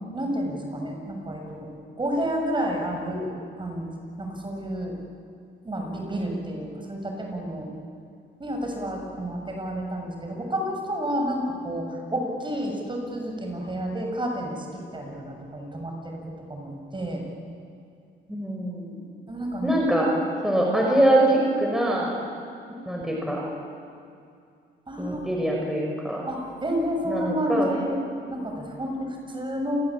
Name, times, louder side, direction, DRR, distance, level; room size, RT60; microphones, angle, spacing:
voice 1, 0.1-1.7 2.0-3.3 3.6-3.9 4.2-5.0 5.6-7.7 8.4-16.2 16.5-17.2 19.3-19.7 24.9-25.3 26.3-28.0 28.3-29.8, equal, 25° right, 1 dB, 7.0 m, -30 dB
voice 2, 18.3-19.0 19.6-20.1 20.4-22.1 22.7-23.4 25.0-26.2 27.0-27.7, right 1 dB, ahead, -2 dB, 5.8 m, -23 dB
28.0 x 20.0 x 8.7 m, 2.4 s
cardioid pair, 90°, 20 cm